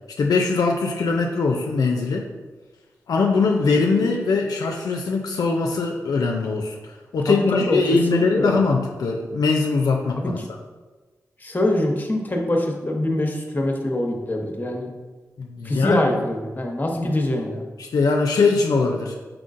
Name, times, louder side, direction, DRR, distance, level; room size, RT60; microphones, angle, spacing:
voice 1, 0.2-2.3 3.1-6.8 7.1-10.4 15.4-16.1 17.8-19.1, left 4 dB, 80° left, 1 dB, 0.4 m, -21 dB
voice 2, 7.3-7.8 8.1-8.6 10.2-10.3 11.4-14.9 15.6-17.6, left 1 dB, 30° left, 2 dB, 0.8 m, -24 dB
4.6 x 3.7 x 2.5 m, 1.3 s
cardioid pair, 45°, 6 cm